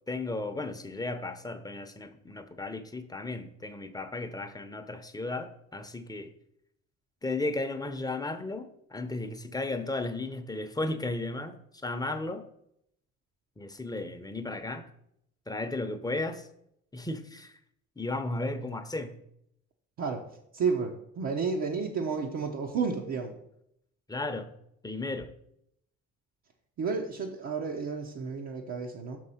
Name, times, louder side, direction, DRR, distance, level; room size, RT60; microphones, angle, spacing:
voice 1, 0.1-6.3 7.2-12.5 13.6-14.8 15.5-16.5 16.9-17.6 18.0-19.2 24.1-24.5 24.8-25.3, left 2 dB, 10° left, 7 dB, 0.8 m, -35 dB
voice 2, 20.5-23.3 26.8-29.2, right 5 dB, 65° right, -1 dB, 0.9 m, -31 dB
6.0 x 4.7 x 5.7 m, 0.74 s
cardioid pair, 90°, 30 cm